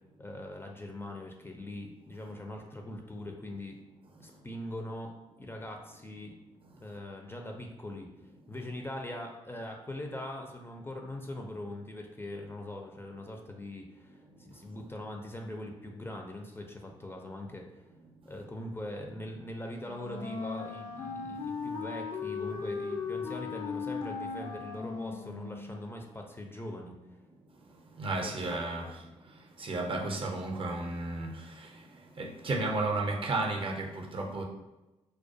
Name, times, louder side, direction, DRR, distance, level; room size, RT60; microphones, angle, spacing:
voice 1, 0.2-3.8 4.2-6.4 6.8-8.1 8.5-17.7 18.3-27.0 28.2-28.9, left 1 dB, 20° left, 2 dB, 0.4 m, -42 dB
Wind instrument woodwind instrument, 19.8-25.7, left 5 dB, 80° left, 0.4 m, -37 dB
voice 2, 28.0-29.0 29.6-31.9 32.2-34.4, right 2 dB, 45° right, 1 dB, 0.5 m, -33 dB
2.2 x 2.2 x 2.6 m, 1.0 s
supercardioid pair, 55°, 13 cm